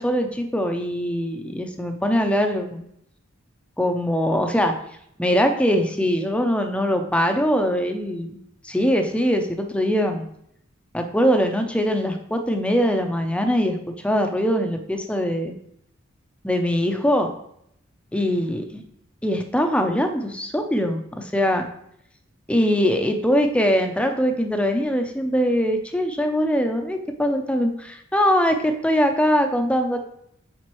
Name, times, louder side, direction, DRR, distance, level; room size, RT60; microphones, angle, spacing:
voice 1, 0.0-2.8 3.8-4.8 5.2-8.3 8.6-10.2 10.9-13.8 14.0-15.5 16.4-17.3 18.1-18.8 19.2-21.7 22.5-30.0, equal, 5° left, 5 dB, 0.6 m, -22 dB
7.4 x 5.1 x 3.1 m, 0.73 s
head